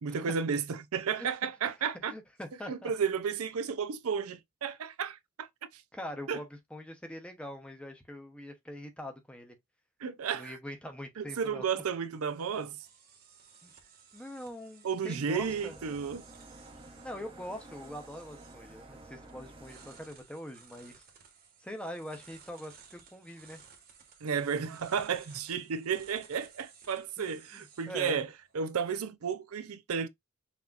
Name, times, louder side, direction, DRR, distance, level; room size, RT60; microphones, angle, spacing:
voice 1, 0.0-2.1 2.7-5.5 5.7-5.8 6.3-6.4 10.0-10.6 11.2-12.8 14.8-16.2 24.2-28.3 28.5-30.1, right 6 dB, 80° right, 0.5 m, -33 dB
voice 2, 2.0-2.9 5.9-9.6 10.3-11.7 13.6-13.7 14.1-15.8 17.0-21.0 21.6-23.6 27.2-28.2, equal, 5° left, 0.8 m, -43 dB
sound 1, 11.8-28.9, right 6 dB, 45° right, 1.2 m, -58 dB
sound 2, 15.4-20.1, right 2 dB, 25° right, 0.8 m, -51 dB
5.9 x 2.8 x 2.4 m
head